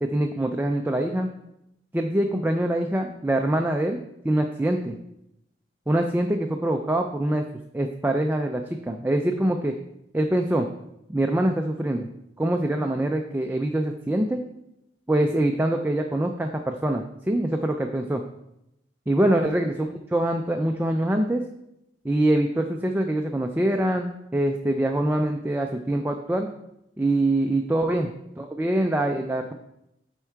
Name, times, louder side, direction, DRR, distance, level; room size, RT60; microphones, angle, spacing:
voice 1, 0.0-1.3 1.9-4.0 4.2-4.9 5.9-7.5 7.7-9.8 10.1-10.7 11.1-12.1 12.4-14.4 15.1-18.2 19.1-21.4 22.0-26.5 27.0-28.1 28.4-29.5, right 1 dB, 10° right, 3 dB, 0.4 m, -24 dB
8.3 x 4.5 x 4.5 m, 0.83 s
head